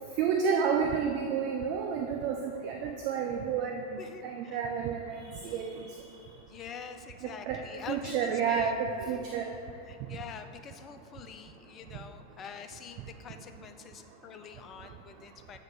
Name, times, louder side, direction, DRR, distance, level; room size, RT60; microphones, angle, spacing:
voice 1, 0.2-5.9 7.5-7.6 7.9-9.4, right 6 dB, 45° right, 2 dB, 0.4 m, -30 dB
voice 2, 4.0-4.6 5.4-5.5 6.5-9.4 9.9-15.6, left 6 dB, 30° left, 8 dB, 0.4 m, -45 dB
7.5 x 3.6 x 4.4 m, 2.5 s
figure-of-eight pair, 90°, 0 cm